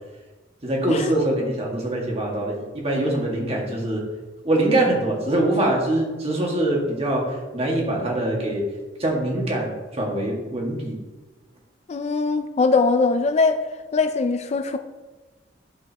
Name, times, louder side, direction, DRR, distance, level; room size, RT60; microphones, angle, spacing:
voice 1, 0.6-4.0 4.5-8.6 9.0-11.0, right 1 dB, 35° right, -1 dB, 1.8 m, -23 dB
voice 2, 11.9-13.6 13.9-14.8, left 4 dB, 35° left, 8 dB, 0.4 m, -21 dB
11.5 x 5.2 x 2.9 m, 1.2 s
head